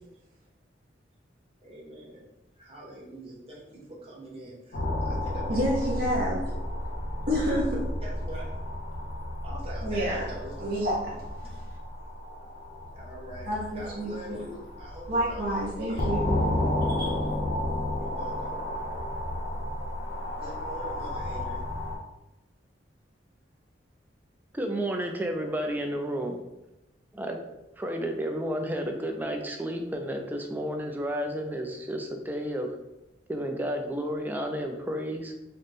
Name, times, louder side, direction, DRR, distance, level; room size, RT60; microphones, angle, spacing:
voice 1, 1.6-2.3 2.5-5.6 5.9-6.3 8.0-8.6 9.4-10.8 11.4-11.6 12.9-16.1 17.9-18.6 20.1-21.6, right 1 dB, 35° right, -5 dB, 1.1 m, -44 dB
sound 1, 4.7-22.0, left 1 dB, 70° left, 0.8 m, -32 dB
voice 2, 5.5-6.4 7.3-7.8 9.8-10.3 10.6-11.1 13.5-14.4 15.1-16.4 17.0-17.1, equal, 55° right, -6 dB, 0.8 m, -28 dB
voice 3, 24.5-26.4 27.1-27.4 27.8-32.7 33.3-35.3, equal, 10° right, 3 dB, 0.4 m, -31 dB
4.0 x 2.1 x 3.3 m, 0.95 s
head